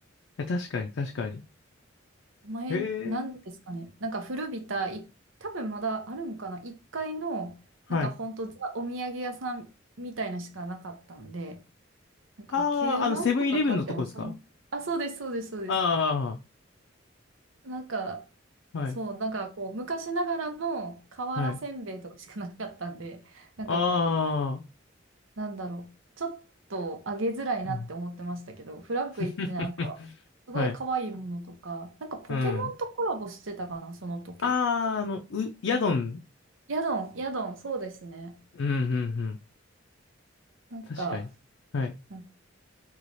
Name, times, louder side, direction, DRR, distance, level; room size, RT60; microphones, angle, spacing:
voice 1, 0.4-1.4 2.7-3.3 7.9-8.1 12.5-14.3 15.7-16.4 18.7-19.0 21.4-21.6 23.7-24.6 27.7-27.8 29.4-30.1 30.5-30.7 32.3-32.6 34.4-36.2 38.5-39.4 40.9-41.2 41.7-41.9, left 4 dB, 70° left, 0.4 m, -28 dB
voice 2, 2.4-5.1 5.4-7.6 7.9-9.7 10.0-11.6 12.4-14.3 14.7-15.7 17.6-18.2 18.9-24.1 25.4-25.9 26.2-26.4 26.7-30.0 30.5-34.5 36.7-38.3 40.7-41.3 42.1-42.3, right 3 dB, 85° right, 0.8 m, -34 dB
3.1 x 2.4 x 4.0 m
head